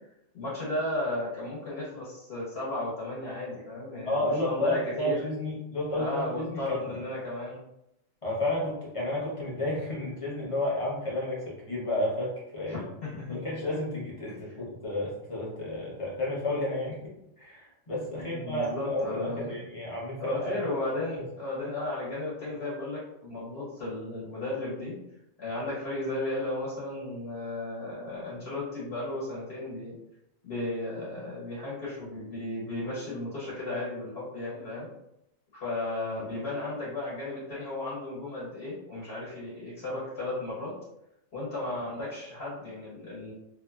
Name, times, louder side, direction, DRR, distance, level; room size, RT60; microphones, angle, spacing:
voice 1, 0.3-5.2 6.0-7.6 12.7-13.4 14.3-14.6 18.1-19.6 20.2-24.9 25.4-29.9 30.4-34.9 35.5-40.7 41.3-43.3, left 2 dB, 50° left, -8 dB, 1.2 m, -34 dB
voice 2, 4.1-6.8 8.2-12.8 13.3-17.0 17.4-20.5, left 1 dB, 30° left, -6 dB, 0.6 m, -31 dB
2.8 x 2.3 x 2.3 m, 0.81 s
omnidirectional pair, 1.4 m